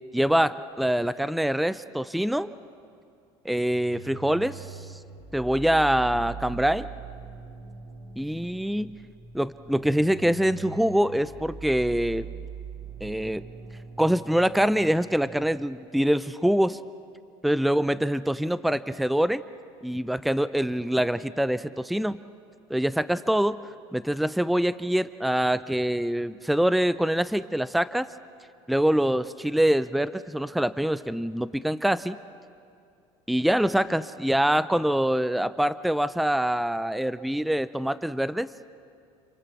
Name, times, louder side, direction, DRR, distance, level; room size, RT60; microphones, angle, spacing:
voice 1, 0.1-2.5 3.4-4.8 5.3-6.9 8.2-8.9 9.3-12.3 13.0-13.4 14.0-16.8 17.4-19.4 19.8-22.2 22.7-23.6 23.9-28.1 28.7-32.2 33.3-38.5, equal, ahead, 15 dB, 0.6 m, -24 dB
sound 1, 3.7-15.6, right 6 dB, 55° right, 6.2 m, -42 dB
30.0 x 23.5 x 7.2 m, 2.4 s
supercardioid pair, 95°, 13 cm